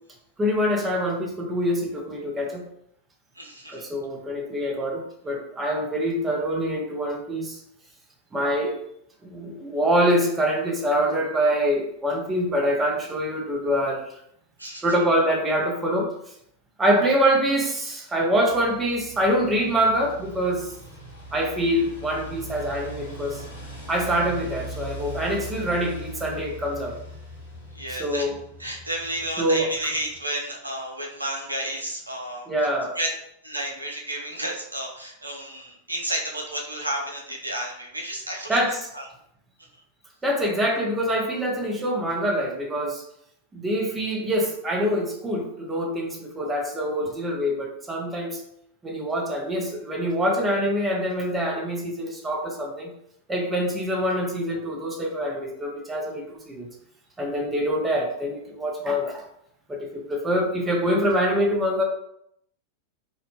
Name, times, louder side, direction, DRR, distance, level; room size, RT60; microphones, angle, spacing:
voice 1, 0.4-2.6 3.7-7.6 8.3-8.8 9.2-14.0 14.8-16.1 16.8-20.7 21.3-23.4 23.9-27.0 27.9-28.3 29.4-29.7 32.5-33.0 38.5-38.9 40.2-43.0 43.5-48.4 48.8-52.9 53.3-56.7 57.2-59.2 59.7-61.8, equal, 15° right, 0 dB, 0.5 m, -25 dB
voice 2, 3.4-3.9 14.6-14.8 27.7-28.2 28.6-32.5 33.0-33.1 33.4-38.6 38.9-39.1, right 1 dB, 85° right, -1 dB, 0.5 m, -31 dB
sound 1, 18.5-30.2, right 1 dB, 70° left, 1.0 m, -40 dB
2.6 x 2.1 x 2.8 m, 0.73 s
figure-of-eight pair, 90°, 0 cm